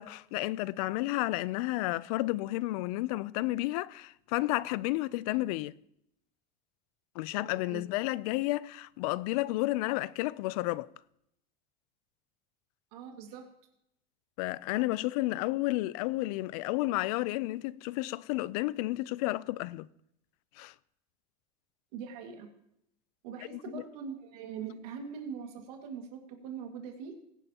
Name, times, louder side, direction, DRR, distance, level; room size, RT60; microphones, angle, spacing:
voice 1, 0.0-5.7 7.2-10.9 14.4-19.9 20.6-20.7 23.5-23.8, left 18 dB, 70° left, 0.4 m, -31 dB
voice 2, 7.3-7.9 12.9-13.4 21.9-22.5 23.2-27.2, right 7 dB, 90° right, 2.0 m, -42 dB
20.5 x 11.0 x 2.9 m
cardioid pair, 170°, 19 cm